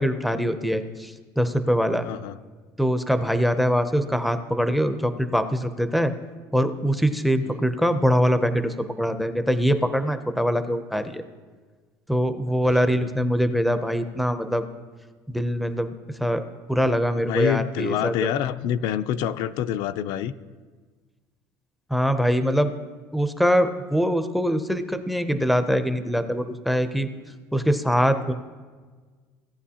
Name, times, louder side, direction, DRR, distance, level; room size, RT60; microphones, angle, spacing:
voice 1, 0.0-2.1 2.8-6.1 6.5-11.2 12.1-14.6 15.3-15.9 16.2-16.4 16.7-18.1 21.9-22.7 23.1-27.1 27.5-28.3, equal, ahead, 9 dB, 0.5 m, -23 dB
voice 2, 2.0-2.4 7.4-7.6 12.9-13.1 17.3-20.3, left 10 dB, 65° left, 12 dB, 0.4 m, -27 dB
17.0 x 8.9 x 2.8 m, 1.5 s
cardioid pair, 150°, 8 cm